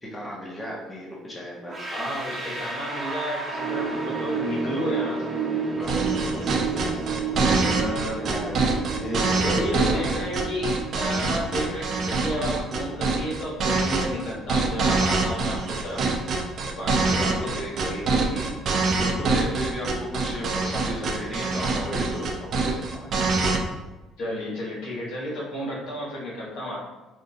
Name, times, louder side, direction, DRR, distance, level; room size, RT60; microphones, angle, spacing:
voice 1, 0.0-1.9 5.7-6.6 8.2-10.1 17.0-17.6 18.9-22.2 22.5-23.1, equal, 25° left, -4 dB, 1.1 m, -34 dB
sound 1, 1.7-12.6, right 5 dB, 30° right, 1.0 m, -31 dB
voice 2, 1.9-5.5 7.5-8.3 9.4-16.0 16.7-18.6 24.2-26.8, left 1 dB, 70° left, -6 dB, 1.4 m, -32 dB
sound 2, 5.8-23.6, right 3 dB, 55° right, 0.5 m, -25 dB
4.6 x 2.5 x 2.4 m, 1.1 s
hypercardioid pair, 65°, 0 cm